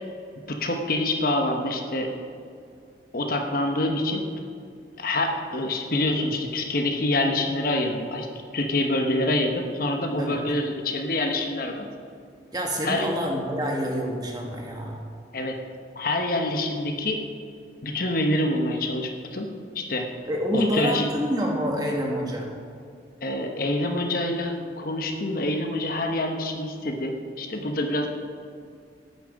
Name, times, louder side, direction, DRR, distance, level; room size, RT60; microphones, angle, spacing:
voice 1, 0.5-2.1 3.1-4.2 5.0-8.3 8.5-11.9 12.8-13.1 15.3-15.6 16.0-17.2 17.8-19.5 19.7-20.1 20.5-21.1 23.2-28.1, left 1 dB, 50° left, 4 dB, 1.0 m, -26 dB
voice 2, 12.5-15.0 20.3-22.5, equal, 20° right, 0 dB, 1.7 m, -27 dB
13.0 x 9.6 x 5.2 m, 2.3 s
head